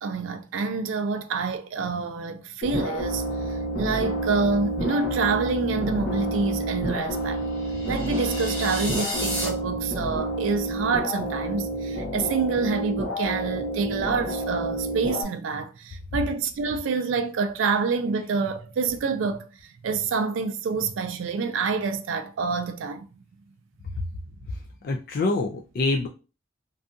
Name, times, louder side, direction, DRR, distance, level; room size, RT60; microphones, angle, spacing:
voice 1, 0.0-7.5 7.9-19.5 19.8-23.1, right 4 dB, 85° right, 0.4 m, -27 dB
sound 1, 2.6-15.2, right 1 dB, 85° left, 1.1 m, -29 dB
sound 2, 7.5-9.5, equal, 10° left, 0.8 m, -33 dB
voice 2, 24.8-26.1, left 2 dB, 50° left, 0.3 m, -25 dB
2.6 x 2.3 x 2.5 m
head